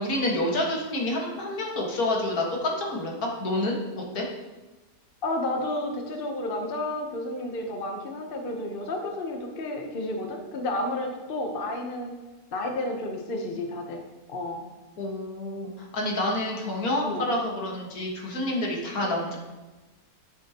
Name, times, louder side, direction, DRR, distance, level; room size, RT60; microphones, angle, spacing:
voice 1, 0.0-4.3 15.0-19.4, left 1 dB, 75° left, -1 dB, 2.1 m, -28 dB
voice 2, 5.2-12.1 12.5-14.0 14.3-14.7 17.0-17.3, left 1 dB, 40° left, 3 dB, 1.0 m, -31 dB
12.0 x 6.9 x 2.9 m, 1.1 s
omnidirectional pair, 1.6 m